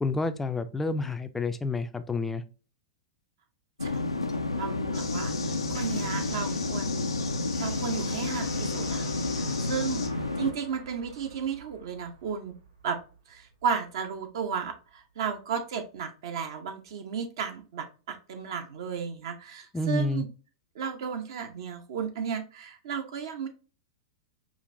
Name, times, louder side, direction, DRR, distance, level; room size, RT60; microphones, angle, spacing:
voice 1, 0.0-2.4 19.7-20.2, left 2 dB, 10° left, 0.4 m, -29 dB
sound 1, 3.8-10.5, left 2 dB, 90° left, 0.4 m, -30 dB
voice 2, 4.5-7.1 7.6-10.1 10.3-12.5 12.8-13.0 13.3-20.3 20.7-23.5, right 6 dB, 60° right, 0.7 m, -34 dB
sound 2, 4.9-10.1, left 6 dB, 70° left, 0.8 m, -40 dB
sound 3, 5.7-15.0, right 3 dB, 85° right, 1.0 m, -49 dB
5.0 x 2.5 x 2.5 m
figure-of-eight pair, 100°, 3 cm